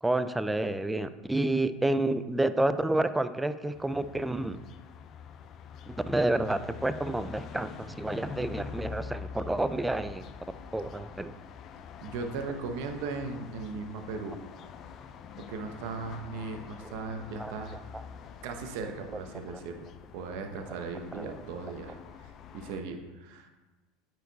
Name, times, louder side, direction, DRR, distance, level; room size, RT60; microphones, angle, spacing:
voice 1, 0.0-4.6 5.9-10.2 10.7-11.3 16.8-16.9 17.4-17.5 17.9-18.0 21.1-21.3, right 2 dB, 10° right, 12 dB, 0.4 m, -29 dB
sound 1, 3.7-22.8, left 7 dB, 45° left, 0.6 m, -45 dB
voice 2, 12.0-14.4 15.4-17.8 18.4-19.9 20.1-23.5, right 4 dB, 70° right, 5 dB, 0.9 m, -38 dB
9.1 x 4.7 x 4.0 m, 1.2 s
hypercardioid pair, 90°, 0 cm